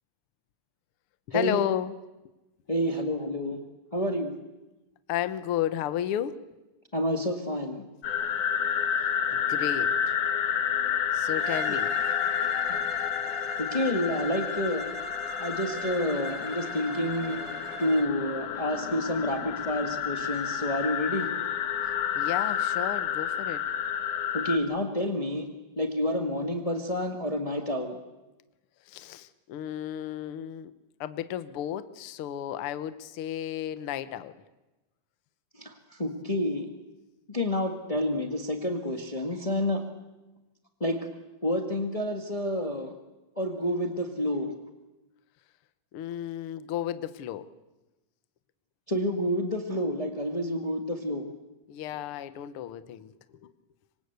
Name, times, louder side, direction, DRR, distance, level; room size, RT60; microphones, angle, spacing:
voice 1, 1.3-1.9 5.1-6.4 9.3-10.2 11.1-11.9 22.1-23.6 28.8-30.7 31.0-34.4 45.9-47.5 51.7-53.1 53.4-53.5, left 11 dB, 90° left, 13 dB, 1.2 m, -33 dB
voice 2, 2.7-3.6 3.9-4.4 6.9-7.9 12.4-13.0 13.6-14.9 15.4-17.4 17.8-21.3 24.3-25.5 25.8-28.0 35.5-36.7 37.3-39.8 40.8-41.0 41.4-42.9 43.4-44.5 48.9-51.2, left 1 dB, 25° left, 4 dB, 0.7 m, -29 dB
sound 1, 8.0-24.6, left 8 dB, 65° left, 2.7 m, -30 dB
Bowed string instrument, 11.4-18.2, right 5 dB, 65° right, 1.2 m, -42 dB
26.5 x 25.0 x 8.2 m, 1.1 s
omnidirectional pair, 4.0 m